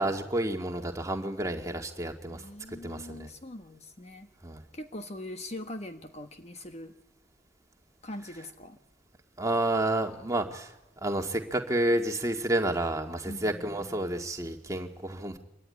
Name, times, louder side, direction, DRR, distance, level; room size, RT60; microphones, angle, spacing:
voice 1, 0.0-3.3 4.4-4.6 9.4-15.4, right 1 dB, 15° right, 3 dB, 2.1 m, -30 dB
voice 2, 2.3-4.3 4.7-6.9 8.0-8.8 13.3-14.0, left 1 dB, 35° left, 7 dB, 1.2 m, -42 dB
26.0 x 22.5 x 9.9 m, 0.94 s
head